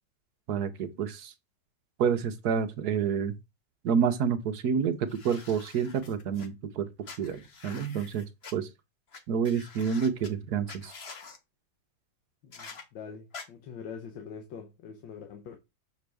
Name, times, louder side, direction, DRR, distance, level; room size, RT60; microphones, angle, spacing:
voice 1, 0.5-1.3 2.0-3.3 3.8-6.9 7.2-8.2 8.5-8.7 9.3-10.9, right 7 dB, 65° right, 1.3 m, -28 dB
sound 1, 5.1-6.5 7.0-8.5 9.1-9.2 9.4-10.3 10.7-11.4 12.5-12.8 13.3-13.4, left 4 dB, 40° left, 1.1 m, -46 dB
voice 2, 12.4-15.6, left 6 dB, 90° left, 1.7 m, -44 dB
7.0 x 6.0 x 3.4 m
omnidirectional pair, 2.0 m